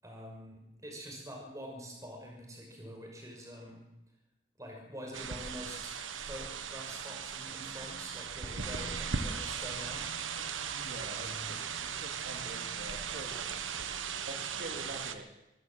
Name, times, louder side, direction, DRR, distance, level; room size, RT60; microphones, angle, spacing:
voice 1, 0.0-3.8 4.6-6.0 6.3-10.3 11.1-11.6, equal, 15° right, 1 dB, 6.2 m, -46 dB
sound 1, 5.1-15.2, right 6 dB, 80° right, 1.4 m, -38 dB
voice 2, 10.7-13.4 14.3-15.3, right 1 dB, 50° right, 1 dB, 2.6 m, -46 dB
25.0 x 14.0 x 7.8 m, 0.93 s
head